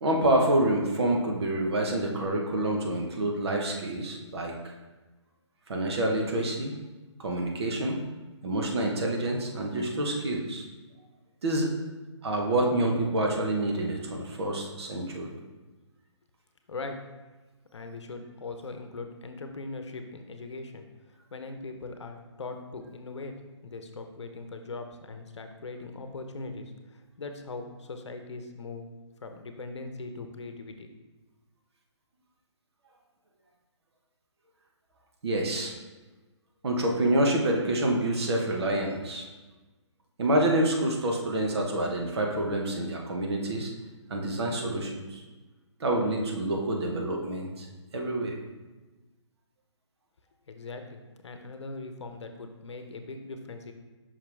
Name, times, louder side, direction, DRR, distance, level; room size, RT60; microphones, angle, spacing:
voice 1, 0.0-4.5 5.7-6.7 7.2-8.0 8.4-10.6 11.4-11.7 12.2-15.3 35.2-35.7 36.6-39.3 40.2-43.7 44.1-45.2 45.8-47.7 47.9-48.3, right 1 dB, 60° right, 0 dB, 1.2 m, -27 dB
voice 2, 17.7-20.9 21.3-23.3 23.6-28.9 29.2-30.9 50.5-53.7, left 3 dB, 70° left, 6 dB, 0.8 m, -40 dB
5.7 x 4.9 x 3.5 m, 1.2 s
figure-of-eight pair, 145°, 16 cm